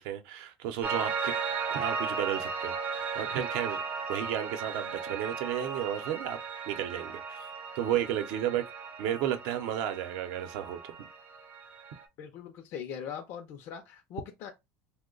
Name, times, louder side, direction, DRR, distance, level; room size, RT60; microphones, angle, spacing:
voice 1, 0.0-1.3 1.7-3.8 4.1-6.4 6.7-7.5 7.7-8.6 9.0-11.1, right 10 dB, 70° right, 0.7 m, -33 dB
Piano, 0.8-12.0, right 5 dB, 30° right, 0.6 m, -36 dB
voice 2, 12.2-14.5, left 8 dB, 45° left, 0.5 m, -41 dB
2.8 x 2.1 x 3.8 m
cardioid pair, 160°, 6 cm